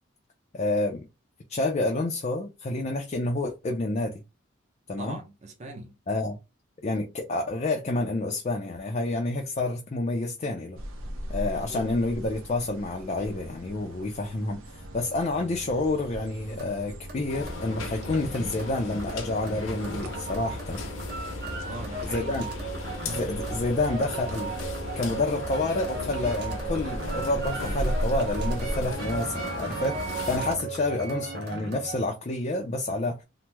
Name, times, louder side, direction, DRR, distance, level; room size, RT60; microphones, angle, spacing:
voice 1, 0.5-1.1 1.5-4.1 4.9-5.2 6.1-6.4 6.8-10.8 11.3-20.8 22.0-22.5 23.1-24.5 24.9-33.2, left 2 dB, 35° left, 0.4 m, -29 dB
voice 2, 5.0-6.0 11.5-11.9 21.6-22.7, right 2 dB, 35° right, 0.6 m, -41 dB
sound 1, 10.8-28.9, equal, 80° right, 0.6 m, -38 dB
sound 2, 14.7-32.1, right 4 dB, 50° right, 0.9 m, -37 dB
sound 3, 17.3-30.6, left 2 dB, 75° left, 0.8 m, -37 dB
2.9 x 2.0 x 3.3 m
head